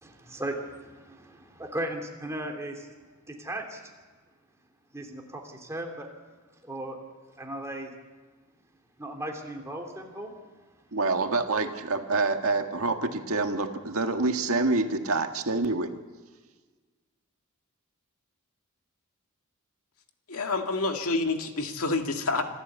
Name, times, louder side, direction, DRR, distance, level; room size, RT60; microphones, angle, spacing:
voice 1, 0.0-2.9 3.3-3.8 4.9-6.1 6.6-7.0 7.4-7.9 9.0-10.3, right 1 dB, 15° right, 2 dB, 3.0 m, -36 dB
voice 2, 10.9-15.9, right 3 dB, 70° right, 5 dB, 1.8 m, -27 dB
voice 3, 20.3-22.4, left 3 dB, 80° left, 4 dB, 2.0 m, -28 dB
26.5 x 13.5 x 8.2 m, 1.4 s
head